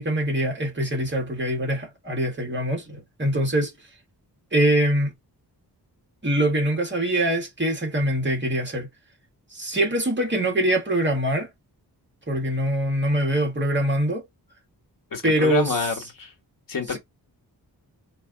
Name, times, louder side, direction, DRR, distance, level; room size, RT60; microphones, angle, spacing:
voice 1, 0.0-3.7 4.5-5.1 6.2-8.9 9.5-11.5 12.3-14.2 15.2-15.7 16.9-17.0, right 1 dB, 30° right, 1.8 m, -23 dB
voice 2, 15.1-16.3 16.7-17.0, left 5 dB, 55° left, 1.5 m, -27 dB
4.6 x 2.8 x 3.8 m
wide cardioid pair, 135°, 39 cm